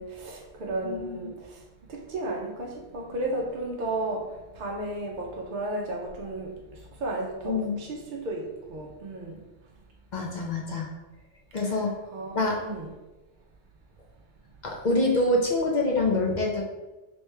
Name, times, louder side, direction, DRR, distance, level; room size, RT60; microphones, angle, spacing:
voice 1, 0.0-1.6 1.9-4.3 4.5-9.4 11.6-12.9, right 2 dB, 55° right, -1 dB, 0.6 m, -34 dB
voice 2, 0.8-1.3 7.4-7.7 10.1-10.9 11.5-11.9 12.3-12.6 14.6-16.6, left 2 dB, 50° left, -1 dB, 0.6 m, -26 dB
3.3 x 3.0 x 3.2 m, 1.1 s
omnidirectional pair, 1.1 m